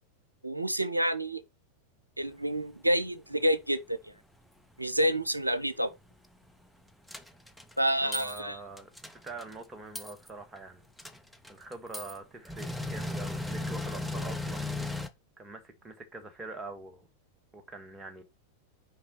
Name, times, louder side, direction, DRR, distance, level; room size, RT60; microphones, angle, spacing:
voice 1, 0.4-1.4 2.2-4.1 4.8-5.9 7.8-8.6, equal, 85° right, 0.7 m, -28 dB
sound 1, 7.1-7.7 8.1-8.4 8.8-9.6 10.0-10.3 10.6-10.7 11.0-12.2 12.5-15.1, left 2 dB, ahead, 0.7 m, -36 dB
voice 2, 8.0-10.9 11.5-14.7 15.4-17.1 17.5-18.2, right 3 dB, 15° right, 1.5 m, -44 dB
5.9 x 5.0 x 4.2 m
figure-of-eight pair, 90°, 0 cm